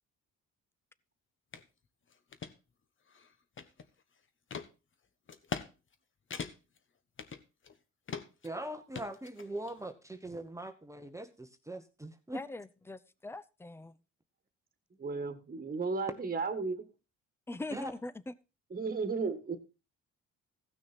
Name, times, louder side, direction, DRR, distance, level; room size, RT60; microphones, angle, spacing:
sound 1, 1.5-1.7 2.1-2.5 3.1-4.0 4.5-4.7 5.3-5.7 5.9-6.0 6.3-6.8 7.2-7.8 8.1-8.5 8.9-9.7, left 6 dB, 40° left, 1.1 m, -41 dB
voice 1, 8.4-12.4 17.7-17.9, right 1 dB, 10° right, 1.0 m, -41 dB
voice 2, 12.3-13.9 17.5-18.3, left 2 dB, 10° left, 0.6 m, -42 dB
voice 3, 15.0-16.8 18.7-19.6, right 4 dB, 30° right, 1.6 m, -34 dB
15.5 x 6.2 x 4.3 m
cardioid pair, 90°, 30 cm